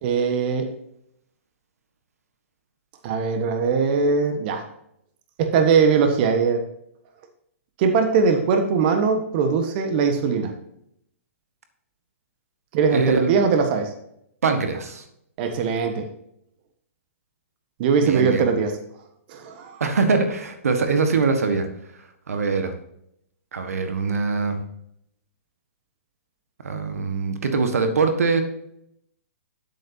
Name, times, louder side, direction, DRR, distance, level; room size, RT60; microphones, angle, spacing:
voice 1, 0.0-0.7 3.0-4.6 5.4-6.6 7.8-10.5 12.7-13.9 15.4-16.0 17.8-18.7 19.3-19.8, right 5 dB, 40° right, 5 dB, 1.4 m, -21 dB
voice 2, 12.9-13.3 14.4-15.0 18.0-18.5 19.8-21.7 22.3-22.7 23.5-24.6 26.6-28.4, right 4 dB, 80° right, 7 dB, 1.6 m, -22 dB
10.0 x 8.3 x 2.8 m, 0.74 s
hypercardioid pair, 140°, 8 cm